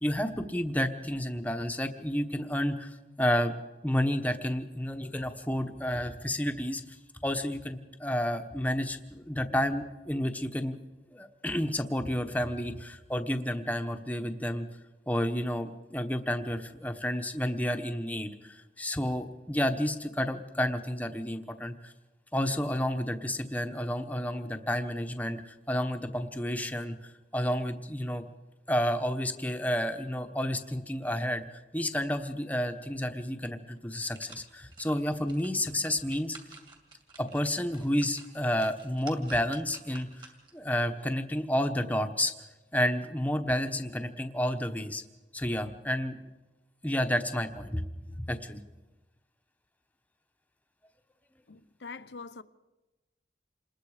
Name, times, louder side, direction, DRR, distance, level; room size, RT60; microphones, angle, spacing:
voice 1, 0.0-3.5 3.8-6.8 7.2-10.8 11.1-14.7 15.1-21.9 22.3-28.2 28.7-36.4 37.2-42.3 42.7-45.0 45.3-46.2 46.8-48.6, equal, 10° left, 1.1 m, -31 dB
sound 1, 33.3-33.4 33.8-40.6 41.1-41.2, right 3 dB, 25° right, 2.6 m, -53 dB
voice 2, 51.5-52.4, left 4 dB, 85° left, 0.8 m, -44 dB
27.5 x 20.5 x 5.0 m
head